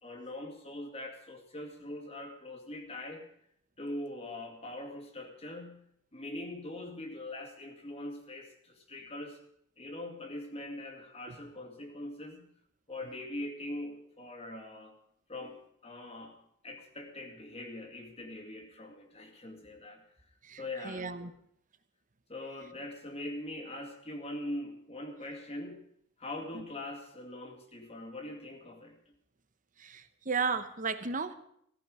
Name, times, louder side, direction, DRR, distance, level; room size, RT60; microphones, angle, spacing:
voice 1, 0.0-3.3 3.8-5.8 6.1-9.4 9.8-12.5 12.9-15.0 15.3-16.4 16.6-20.0 20.6-21.3 22.3-25.8 26.2-29.0, left 1 dB, 30° left, 3 dB, 2.3 m, -42 dB
voice 2, 20.4-21.3 26.5-26.6 29.8-31.3, right 5 dB, 40° right, 11 dB, 1.1 m, -34 dB
17.5 x 14.5 x 5.0 m, 0.69 s
head